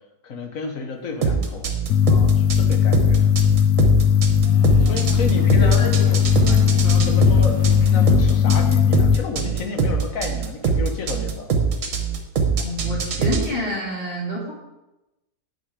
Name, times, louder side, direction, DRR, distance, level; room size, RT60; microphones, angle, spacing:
voice 1, 0.2-1.7 2.1-3.4 4.8-11.5, left 4 dB, 55° left, 4 dB, 1.5 m, -32 dB
sound 1, 1.2-13.5, right 5 dB, 55° right, 1.4 m, -23 dB
sound 2, 1.9-9.1, left 9 dB, 75° left, 1.1 m, -17 dB
sound 3, 3.8-3.9 4.2-8.1, right 3 dB, 20° right, 0.7 m, -40 dB
voice 2, 4.3-6.0 6.5-7.0 12.6-14.5, equal, 40° left, -6 dB, 2.7 m, -29 dB
9.4 x 6.3 x 4.8 m, 0.98 s
omnidirectional pair, 1.7 m